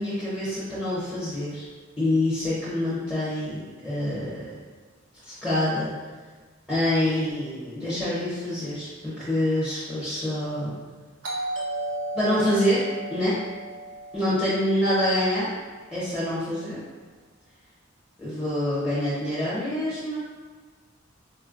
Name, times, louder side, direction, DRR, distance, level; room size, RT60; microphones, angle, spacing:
voice 1, 0.0-1.6 2.0-4.5 5.2-5.9 6.7-10.7 12.1-12.8 13.1-13.3 14.1-15.5 15.9-16.8 18.2-20.2, left 1 dB, 5° left, -11 dB, 0.8 m, -26 dB
Doorbell, 11.2-15.8, right 1 dB, 75° right, 0.7 m, -35 dB
4.3 x 2.1 x 2.4 m, 1.4 s
head